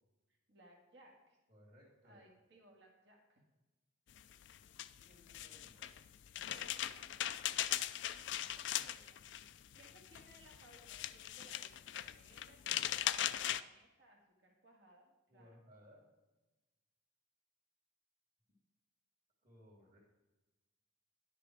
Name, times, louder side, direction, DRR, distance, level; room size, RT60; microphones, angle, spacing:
voice 1, 0.5-1.4 2.0-3.4 6.5-7.4 8.1-9.2 9.8-15.6, right 1 dB, 60° right, 0 dB, 1.9 m, -64 dB
voice 2, 1.5-2.3 4.9-5.9 15.3-16.0 19.4-20.0, equal, 45° right, -8 dB, 2.7 m, -63 dB
sound 1, 4.2-13.6, left 12 dB, 60° left, 0.4 m, -40 dB
11.5 x 6.7 x 4.8 m, 1.1 s
head